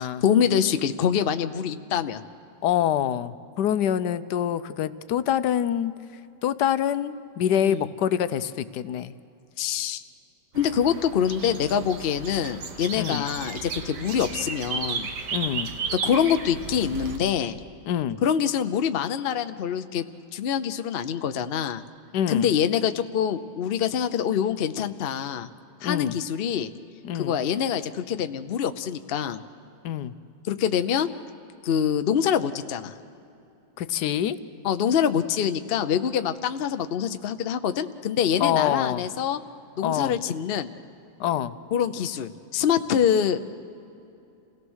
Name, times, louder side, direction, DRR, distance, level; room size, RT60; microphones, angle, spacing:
voice 1, 0.0-2.2 7.6-7.9 9.6-10.0 10.5-15.1 15.9-17.6 18.2-20.0 20.3-21.8 22.3-25.5 25.8-26.7 27.1-29.4 30.5-31.1 31.6-32.9 34.6-39.4 39.8-40.7 41.7-43.4, left 8 dB, 55° left, 9 dB, 0.7 m, -25 dB
voice 2, 2.6-5.9 6.4-9.1 13.0-13.2 15.3-15.7 17.9-18.2 22.1-22.5 25.8-26.2 27.0-27.4 29.8-30.1 33.8-34.4 38.4-39.0 39.8-40.2 41.2-41.5, left 10 dB, 80° left, 13 dB, 1.2 m, -25 dB
sound 1, 10.5-17.2, right 5 dB, 75° right, 1.8 m, -34 dB
28.0 x 17.5 x 6.3 m, 2.7 s
omnidirectional pair, 1.8 m